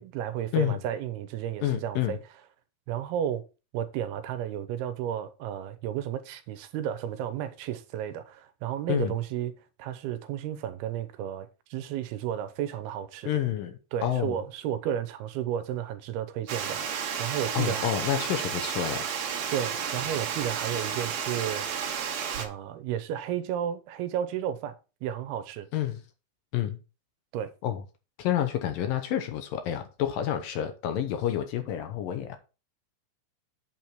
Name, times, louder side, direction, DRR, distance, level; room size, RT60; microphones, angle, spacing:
voice 1, 0.0-2.2 2.9-3.4 3.7-9.5 9.8-13.3 13.9-17.9 19.5-21.7 22.4-24.8 25.0-25.7 27.3-27.5, right 10 dB, 85° right, 2.7 m, -33 dB
voice 2, 1.6-2.2 8.9-9.1 13.3-14.4 17.5-19.1 25.7-26.0 26.5-26.8 27.6-27.8 28.2-32.4, left 11 dB, 70° left, 2.4 m, -29 dB
Water, 16.5-22.5, right 7 dB, 55° right, 2.1 m, -32 dB
8.4 x 4.6 x 5.9 m
omnidirectional pair, 4.5 m